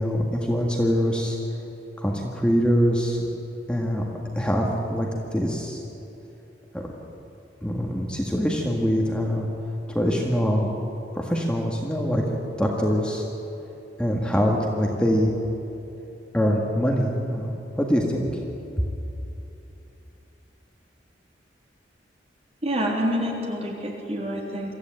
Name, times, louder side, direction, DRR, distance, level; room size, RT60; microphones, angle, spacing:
voice 1, 0.0-1.4 2.0-3.2 3.7-4.0 4.3-5.8 6.7-6.9 7.6-9.5 9.9-10.7 11.1-12.2 12.6-13.2 14.0-15.3 16.3-18.3, equal, 5° left, -1 dB, 1.8 m, -24 dB
voice 2, 22.6-24.7, equal, 35° right, -1 dB, 3.5 m, -27 dB
23.5 x 14.5 x 9.0 m, 2.9 s
head